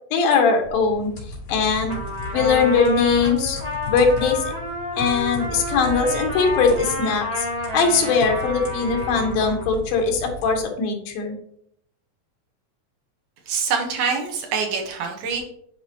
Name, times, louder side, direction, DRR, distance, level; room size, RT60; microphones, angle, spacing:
voice 1, 0.1-1.1 1.5-2.0 2.3-3.6 3.9-4.4 4.9-7.5 7.7-11.4, left 5 dB, 85° left, 3 dB, 3.0 m, -20 dB
sound 1, 0.6-10.6, left 2 dB, 55° left, 3.8 m, -35 dB
Trumpet, 1.9-9.7, left 1 dB, 20° right, 0.9 m, -30 dB
voice 2, 13.5-15.4, right 5 dB, 70° right, 2 dB, 2.4 m, -25 dB
10.5 x 5.0 x 2.9 m, 0.70 s
omnidirectional pair, 4.1 m